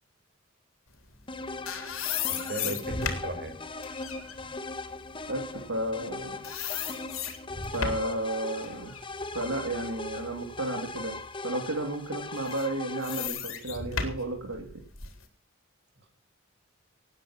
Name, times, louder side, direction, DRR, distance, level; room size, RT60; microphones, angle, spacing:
sound 1, 1.2-6.1 6.4-8.2 8.6-10.6 11.1-11.2 12.2-15.2, left 6 dB, 80° left, 3.7 m, -36 dB
sound 2, 1.3-13.3, left 3 dB, 25° left, 1.2 m, -39 dB
voice 1, 2.3-3.5, right 1 dB, 55° right, 5 dB, 5.1 m, -37 dB
voice 2, 5.3-6.4 7.7-9.0 9.3-14.7, right 1 dB, 90° right, 3 dB, 2.6 m, -33 dB
18.5 x 9.7 x 5.7 m, 0.42 s
head